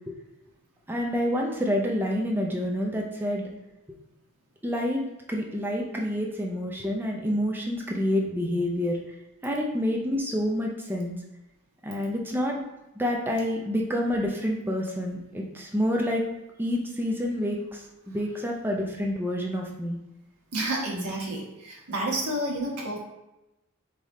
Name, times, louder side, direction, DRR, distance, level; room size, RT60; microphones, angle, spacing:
voice 1, 0.9-3.4 4.6-5.0 5.3-9.0 9.4-11.1 11.8-12.6 13.0-16.2 16.6-17.6 18.1-20.0, equal, 10° right, -1 dB, 0.5 m, -28 dB
voice 2, 20.5-23.0, right 1 dB, 90° right, -1 dB, 1.2 m, -30 dB
4.0 x 3.5 x 3.7 m, 0.95 s
head